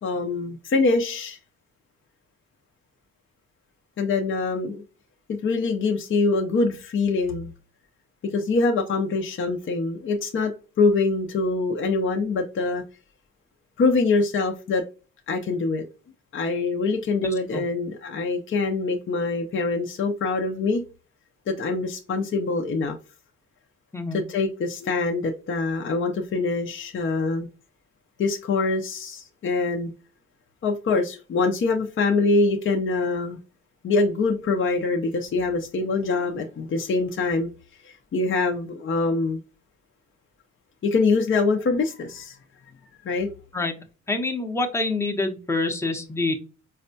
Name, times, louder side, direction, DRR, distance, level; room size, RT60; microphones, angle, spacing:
voice 1, 0.0-1.4 4.0-4.8 5.3-7.5 8.3-10.5 10.8-12.8 13.8-14.8 15.3-15.8 16.3-20.8 21.5-23.0 24.1-27.5 28.2-29.9 30.6-33.4 33.8-37.5 37.8-39.4 40.8-42.4 43.0-43.3, left 3 dB, 40° left, 0.6 m, -24 dB
voice 2, 17.2-17.6 23.9-24.2 43.5-43.8 44.1-46.3, left 2 dB, 10° left, 0.7 m, -26 dB
4.0 x 2.2 x 2.6 m
cardioid pair, 90°, 30 cm